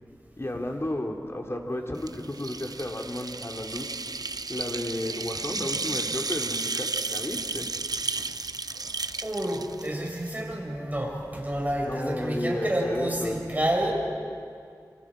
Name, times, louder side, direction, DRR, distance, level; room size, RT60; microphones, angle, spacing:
voice 1, 0.4-4.0 4.5-7.7 11.8-13.5, left 1 dB, 40° left, 1 dB, 2.6 m, -33 dB
sound 1, 2.0-10.4, right 3 dB, 70° right, 0.6 m, -33 dB
voice 2, 9.2-13.9, right 1 dB, 25° right, -1 dB, 5.9 m, -29 dB
27.0 x 27.0 x 5.0 m, 2.3 s
wide cardioid pair, 60°, 7 cm